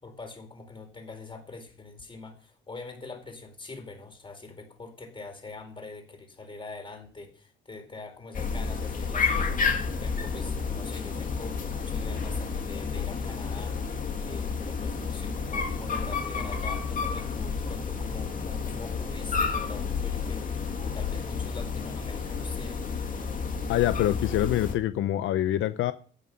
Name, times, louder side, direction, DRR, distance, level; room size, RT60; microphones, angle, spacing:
voice 1, 0.0-13.8 14.2-22.8, left 3 dB, 25° left, 5 dB, 4.7 m, -44 dB
sound 1, 8.3-24.7, left 5 dB, 40° left, 2.5 m, -31 dB
voice 2, 23.7-25.9, left 13 dB, 80° left, 12 dB, 0.7 m, -25 dB
13.5 x 9.2 x 5.7 m, 0.44 s
cardioid pair, 90°, 20 cm